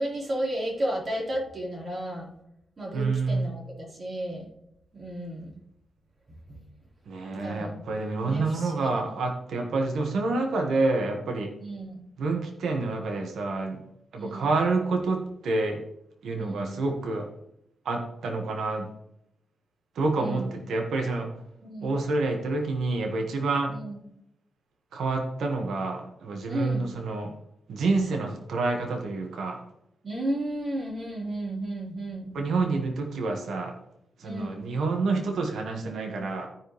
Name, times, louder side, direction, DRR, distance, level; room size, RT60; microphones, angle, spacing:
voice 1, 0.0-2.3 2.8-4.5 4.9-5.5 6.5-6.6 7.3-7.8 8.2-9.0 11.6-12.0 14.2-14.5 16.4-16.7 20.2-20.5 21.6-22.0 23.7-24.0 26.5-26.9 30.0-32.3 34.2-34.7, right 1 dB, 45° right, -3 dB, 3.9 m, -33 dB
voice 2, 2.9-3.5 7.1-11.5 12.2-13.8 14.1-15.8 16.2-17.3 17.8-18.9 19.9-21.3 21.8-23.7 24.9-27.3 27.7-29.6 32.3-33.7 34.2-36.5, right 3 dB, 85° right, 2 dB, 1.5 m, -28 dB
14.0 x 5.3 x 3.2 m, 0.78 s
cardioid pair, 75°, 0 cm